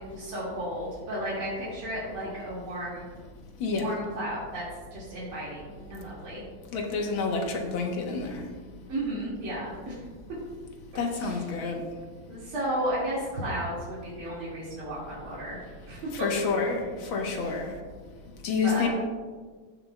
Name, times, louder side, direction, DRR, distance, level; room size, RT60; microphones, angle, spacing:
voice 1, 0.0-3.0 3.7-4.7 4.9-6.4 8.9-10.0 11.2-11.4 12.3-16.3 17.4-17.5 18.6-18.9, right 1 dB, 80° right, -9 dB, 3.0 m, -33 dB
voice 2, 3.6-4.0 6.7-8.5 11.0-11.9 16.1-17.8 18.4-18.9, left 4 dB, 75° left, 2 dB, 1.8 m, -29 dB
15.5 x 6.7 x 2.2 m, 1.5 s
omnidirectional pair, 2.3 m